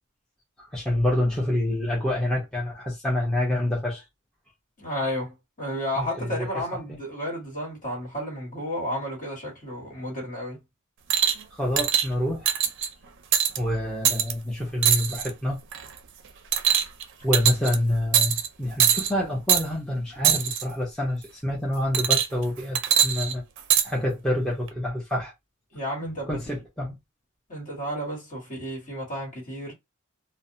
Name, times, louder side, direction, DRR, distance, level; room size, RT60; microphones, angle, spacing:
voice 1, 0.6-4.0 6.0-6.5 6.9-7.0 11.5-12.5 13.6-15.6 17.2-23.4 23.8-25.3 26.0-27.0, left 1 dB, 5° left, 0.7 m, -27 dB
voice 2, 4.8-10.6 25.7-26.6 27.5-29.7, equal, 40° left, 1.6 m, -32 dB
sound 1, 11.1-11.4 11.8-12.1 12.5-12.9 13.3-13.6 14.1-14.3 14.8-15.3 15.7-16.0 16.5-17.0 17.3-17.8 18.1-18.5 18.8-19.1 19.5-19.6 20.2-20.6 21.9-22.4 22.8-23.9 24.7-24.8, right 9 dB, 60° right, 0.5 m, -22 dB
2.6 x 2.1 x 2.6 m
head